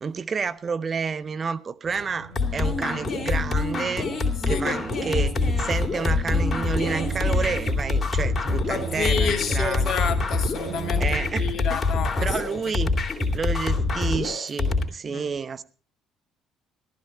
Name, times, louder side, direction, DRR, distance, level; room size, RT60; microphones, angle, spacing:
voice 1, 0.0-4.1 4.5-9.9 11.0-11.8 12.2-12.9 13.3-15.6, right 5 dB, 40° right, 0.9 m, -30 dB
sound 1, 1.8-11.3, right 4 dB, 65° right, 6.7 m, -36 dB
sound 2, 2.4-14.8, left 3 dB, 35° left, 3.2 m, -25 dB
voice 2, 8.5-11.0 11.4-12.8 15.1-15.3, left 6 dB, 50° left, 2.3 m, -29 dB
14.5 x 14.0 x 4.3 m
figure-of-eight pair, 50°, 0 cm